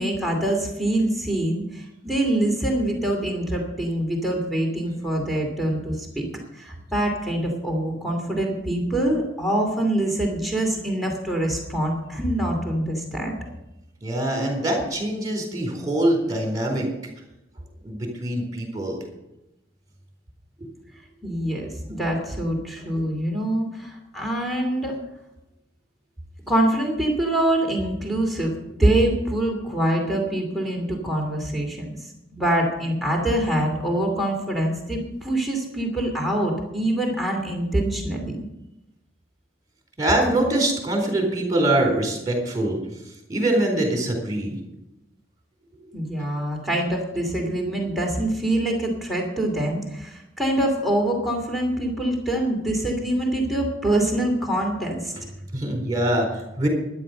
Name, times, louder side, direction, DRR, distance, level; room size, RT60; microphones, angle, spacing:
voice 1, 0.0-6.3 6.5-13.4 21.2-25.0 26.5-38.4 45.9-55.1, right 1 dB, ahead, -1 dB, 2.6 m, -25 dB
voice 2, 14.0-16.9 17.8-19.0 20.6-20.7 40.0-42.8 43.3-44.6 55.5-56.7, right 1 dB, 20° right, 2 dB, 3.9 m, -23 dB
13.0 x 10.5 x 6.4 m, 0.90 s
head